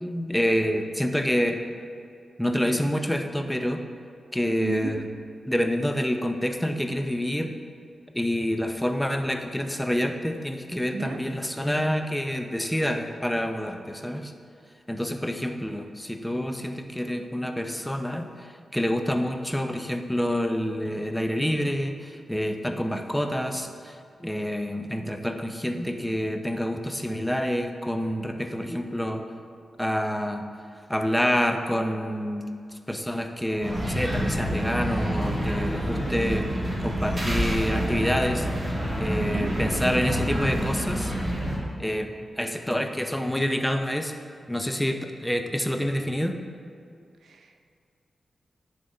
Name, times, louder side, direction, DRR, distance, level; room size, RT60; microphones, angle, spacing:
voice 1, 0.0-1.6 2.4-3.8 4.3-5.1 5.5-7.5 8.1-14.3 14.9-29.2 29.8-30.5 30.9-32.5 32.9-41.1 41.8-42.1 42.4-44.1 44.5-46.4, equal, 5° left, 5 dB, 0.6 m, -27 dB
voice 2, 4.6-4.9 10.9-11.2 39.2-39.5 47.2-47.7, right 5 dB, 85° right, 5 dB, 0.5 m, -34 dB
sound 1, 33.6-41.6, equal, 30° right, 1.7 m, -28 dB
10.0 x 3.7 x 3.9 m, 2.4 s
cardioid pair, 65°, 0 cm